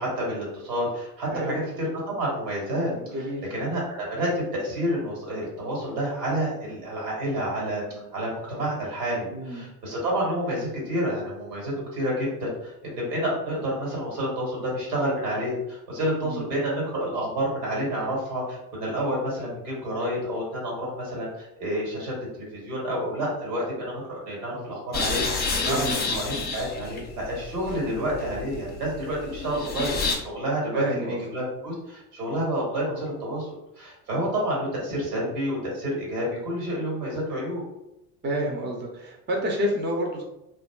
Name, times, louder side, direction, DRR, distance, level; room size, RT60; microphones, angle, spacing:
voice 1, 0.0-2.9 3.5-7.8 8.1-30.0 30.2-33.5 33.8-37.6, equal, 85° right, -4 dB, 1.5 m, -29 dB
voice 2, 2.9-3.4 8.0-8.1 9.3-9.7 16.2-16.5 25.7-26.0 30.7-31.2 38.2-40.2, equal, 25° right, 0 dB, 0.6 m, -29 dB
sound 1, 24.9-30.2, left 4 dB, 20° left, 0.5 m, -30 dB
2.5 x 2.5 x 2.2 m, 0.88 s
hypercardioid pair, 80°, 46 cm